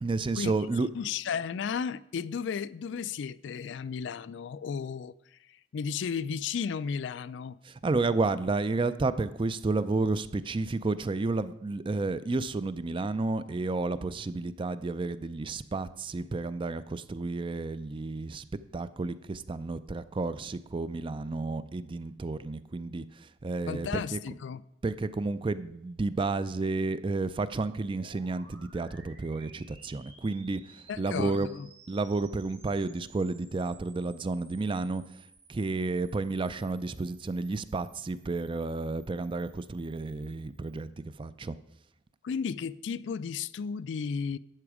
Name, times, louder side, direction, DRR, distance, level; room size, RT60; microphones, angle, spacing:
voice 1, 0.0-0.9 7.6-18.4 18.7-24.2 24.8-31.5 31.9-35.2 35.5-41.6, right 3 dB, 25° right, 0.4 m, -31 dB
voice 2, 0.9-7.6 23.7-24.6 30.9-31.7 42.2-44.4, left 6 dB, 65° left, 0.4 m, -34 dB
sound 1, 27.5-40.9, right 4 dB, 90° right, 3.5 m, -57 dB
12.0 x 7.9 x 4.9 m
head